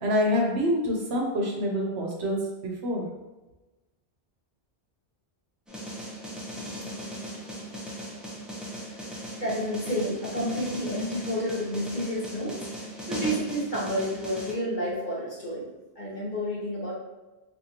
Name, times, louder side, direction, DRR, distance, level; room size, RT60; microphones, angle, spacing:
voice 1, 0.0-2.4 2.6-3.1, equal, 70° right, -1 dB, 1.1 m, -26 dB
sound 1, 5.7-14.5, equal, ahead, 0.5 m, -38 dB
voice 2, 8.9-15.7 15.9-16.9, equal, 45° left, -6 dB, 1.3 m, -30 dB
4.2 x 2.7 x 2.9 m, 1.1 s
omnidirectional pair, 1.1 m